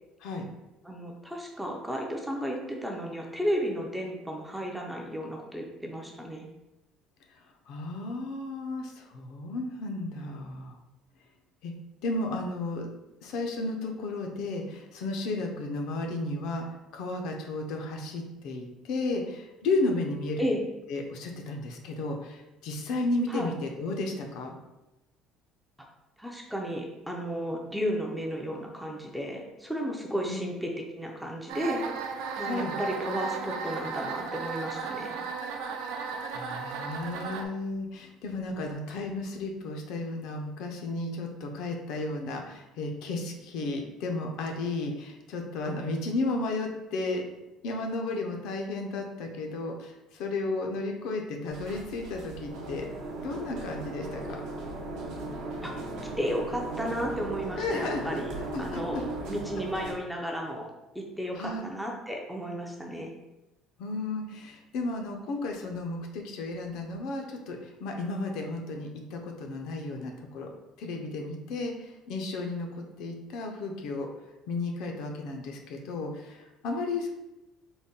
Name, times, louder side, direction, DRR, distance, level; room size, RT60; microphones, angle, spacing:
voice 1, 0.8-6.4 20.4-20.6 23.3-23.5 26.2-35.2 55.6-55.7 56.2-59.0 59.3-60.7 60.9-63.1, equal, ahead, 0 dB, 0.4 m, -33 dB
voice 2, 7.7-10.8 11.6-11.7 12.0-12.9 13.2-16.6 16.9-20.5 20.9-24.5 30.3-30.4 32.4-32.7 35.9-47.2 47.6-52.9 53.2-54.5 57.6-59.0 61.3-61.7 63.8-70.5 70.8-74.1 74.5-77.1, left 2 dB, 65° left, 2 dB, 0.5 m, -33 dB
sound 1, 31.5-37.4, right 5 dB, 90° right, 0.4 m, -35 dB
sound 2, 51.5-59.9, right 2 dB, 70° right, 0.8 m, -37 dB
3.9 x 2.1 x 3.7 m, 0.99 s
cardioid pair, 165°, 0 cm